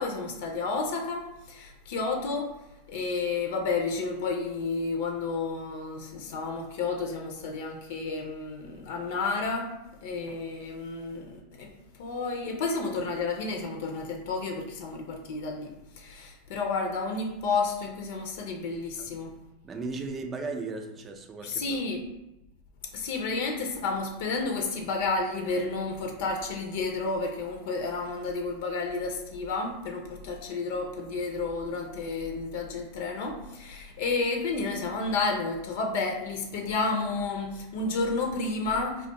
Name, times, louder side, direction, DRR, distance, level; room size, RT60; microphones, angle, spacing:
voice 1, 0.0-2.5 2.9-9.7 10.0-11.7 12.0-19.3 21.4-22.0 22.9-39.1, left 3 dB, 65° left, 2 dB, 0.5 m, -31 dB
voice 2, 19.6-21.8, right 3 dB, 25° right, 5 dB, 0.4 m, -36 dB
2.4 x 2.3 x 3.9 m, 0.94 s
hypercardioid pair, 90°, 0 cm